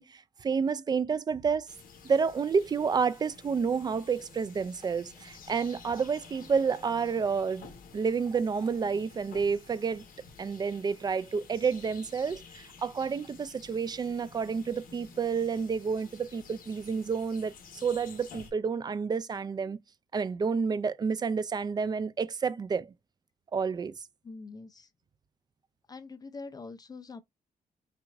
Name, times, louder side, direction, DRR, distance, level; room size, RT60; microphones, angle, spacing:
voice 1, 0.0-1.7 2.0-7.7 7.9-10.0 10.4-17.5 17.8-19.8 20.1-22.9 23.5-23.9, right 5 dB, 30° right, 0.3 m, -29 dB
sound 1, 1.7-18.5, left 5 dB, 75° left, 1.4 m, -52 dB
voice 2, 24.2-24.9 25.9-27.2, left 3 dB, 25° left, 0.5 m, -44 dB
5.9 x 2.5 x 2.5 m
wide cardioid pair, 155°, 15 cm